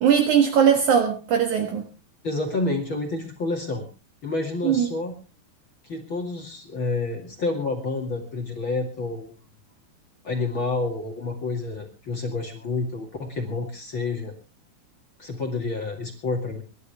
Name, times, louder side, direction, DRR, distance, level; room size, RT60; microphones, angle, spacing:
voice 1, 0.0-1.9 4.6-4.9, right 8 dB, 60° right, 4 dB, 2.1 m, -19 dB
voice 2, 2.2-3.9 4.2-5.2 5.8-9.3 10.2-14.3 15.2-16.6, left 3 dB, 40° left, 1 dB, 2.0 m, -29 dB
25.5 x 12.0 x 3.4 m, 0.33 s
omnidirectional pair, 5.4 m